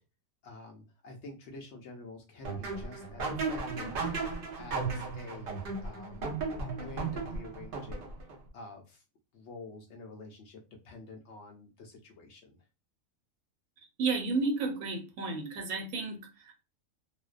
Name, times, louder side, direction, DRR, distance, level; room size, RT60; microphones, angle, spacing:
voice 1, 0.4-4.0 4.6-6.3 6.8-9.0 9.3-12.6, left 3 dB, 65° left, 2 dB, 0.7 m, -48 dB
sound 1, 2.4-8.4, right 4 dB, 55° right, 0.7 m, -35 dB
voice 2, 14.0-16.6, right 3 dB, 85° right, 4 dB, 1.1 m, -32 dB
2.5 x 2.1 x 2.4 m, 0.29 s
omnidirectional pair, 1.5 m